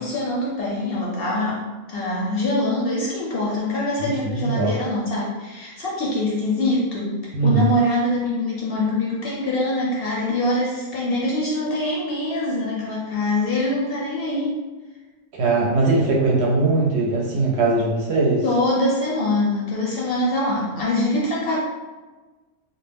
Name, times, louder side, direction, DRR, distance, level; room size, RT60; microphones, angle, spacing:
voice 1, 0.0-14.6 18.4-21.6, left 1 dB, 60° left, -4 dB, 0.7 m, -24 dB
voice 2, 4.3-4.7 7.3-7.6 15.3-18.4, right 3 dB, 65° right, -3 dB, 0.8 m, -20 dB
2.3 x 2.0 x 3.3 m, 1.3 s
omnidirectional pair, 1.3 m